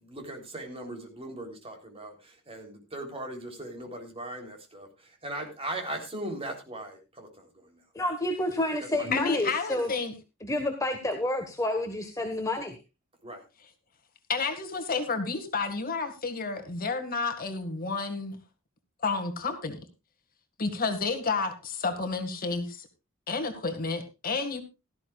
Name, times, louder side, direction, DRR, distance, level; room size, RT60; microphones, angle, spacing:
voice 1, 0.0-4.9 5.2-7.8 8.9-9.2 13.2-13.4, right 1 dB, 30° right, 4 dB, 3.5 m, -39 dB
voice 2, 7.9-9.9 10.4-12.8, left 1 dB, 15° left, 4 dB, 1.4 m, -29 dB
voice 3, 9.1-10.1 14.3-18.4 19.0-19.8 20.6-22.9 23.3-24.6, left 4 dB, 45° left, 8 dB, 2.0 m, -30 dB
16.5 x 13.5 x 2.4 m, 0.27 s
head